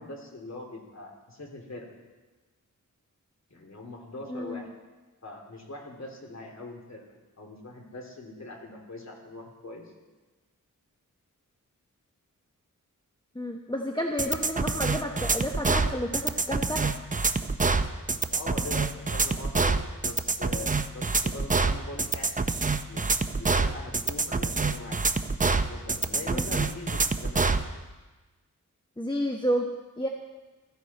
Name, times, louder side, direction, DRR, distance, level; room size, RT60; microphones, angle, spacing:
voice 1, 0.0-1.9 3.5-4.7 5.2-7.0 7.4-9.9 18.3-25.1 25.7-27.5, left 2 dB, 55° left, 0 dB, 2.8 m, -42 dB
voice 2, 4.3-4.6 13.3-16.9 26.3-26.4 29.0-29.7 30.0-30.1, equal, 15° left, 1 dB, 1.1 m, -30 dB
sound 1, 14.2-27.6, right 3 dB, 25° right, 0.6 m, -26 dB
15.5 x 14.5 x 4.2 m, 1.2 s
wide cardioid pair, 90°, 33 cm